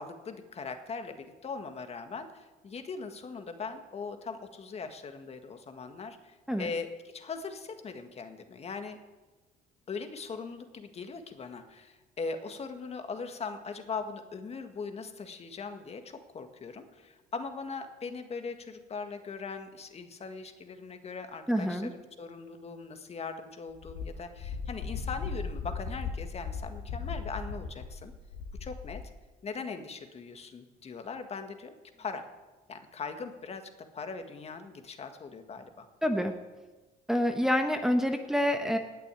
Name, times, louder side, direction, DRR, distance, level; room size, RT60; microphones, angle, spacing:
voice 1, 0.0-9.0 9.9-28.1 28.6-29.0 29.4-32.3 32.7-35.9, left 4 dB, 40° left, 7 dB, 1.8 m, -40 dB
voice 2, 21.5-21.9 36.0-36.3 37.1-38.8, equal, 5° right, 4 dB, 1.2 m, -27 dB
Wind, 23.8-29.1, left 5 dB, 80° left, 1.7 m, -38 dB
18.5 x 6.8 x 9.9 m, 1.2 s
cardioid pair, 110°, 17 cm